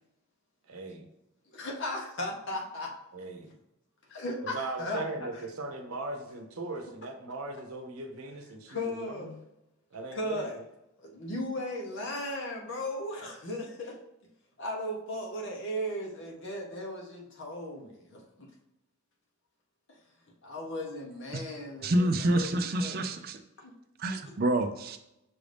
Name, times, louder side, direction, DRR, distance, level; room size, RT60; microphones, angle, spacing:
voice 1, 0.7-1.1 3.1-3.5 4.4-9.4 9.9-10.5, right 2 dB, 90° right, 4 dB, 0.7 m, -39 dB
voice 2, 1.5-2.9 4.1-5.4 8.7-9.3 10.1-10.5 11.0-14.0 14.6-18.5 19.9-20.0 20.4-22.5 22.8-23.0 23.6-23.7, left 1 dB, 60° left, -1 dB, 1.0 m, -36 dB
voice 3, 21.8-23.4 24.0-25.0, right 1 dB, 45° right, 7 dB, 0.4 m, -28 dB
5.9 x 2.6 x 3.4 m, 0.85 s
head